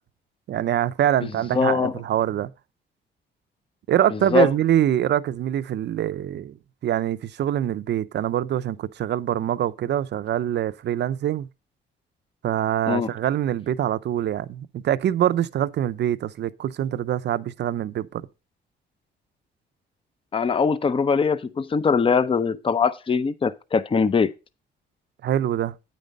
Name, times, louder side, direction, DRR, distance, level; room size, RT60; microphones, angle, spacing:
voice 1, 0.5-2.5 3.9-6.6 6.8-11.5 12.4-18.2 25.2-25.7, right 11 dB, 60° right, 0.6 m, -24 dB
voice 2, 1.5-1.9 4.3-4.5 12.9-13.1 20.3-24.3, left 5 dB, 25° left, 0.6 m, -21 dB
9.1 x 5.2 x 5.3 m
cardioid pair, 90°, 20 cm